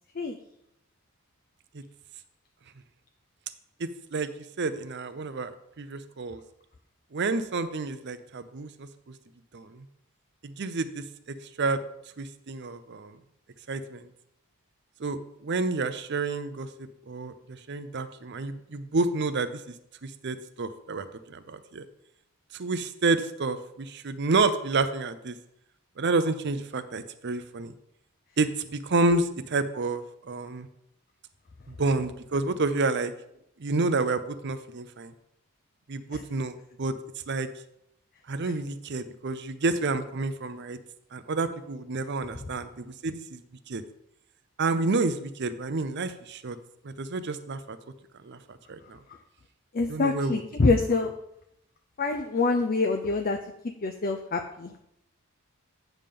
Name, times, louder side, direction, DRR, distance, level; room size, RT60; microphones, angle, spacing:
voice 1, 3.8-4.3 4.6-6.4 7.1-9.1 9.5-9.8 10.4-11.0 11.6-11.8 12.2-13.2 13.7-14.1 15.0-19.7 20.0-21.8 22.5-25.4 26.0-27.7 28.4-29.2 29.5-30.7 31.7-33.1 33.6-35.1 35.9-36.9 37.3-37.5 38.3-40.8 41.1-43.4 43.7-43.8 44.6-46.6 46.8-47.8 48.2-49.0 49.9-50.4, right 3 dB, 50° right, 11 dB, 0.6 m, -29 dB
voice 2, 49.7-51.1 52.0-53.4 53.8-54.7, left 3 dB, 40° left, 4 dB, 0.5 m, -25 dB
9.0 x 3.7 x 6.8 m, 0.77 s
head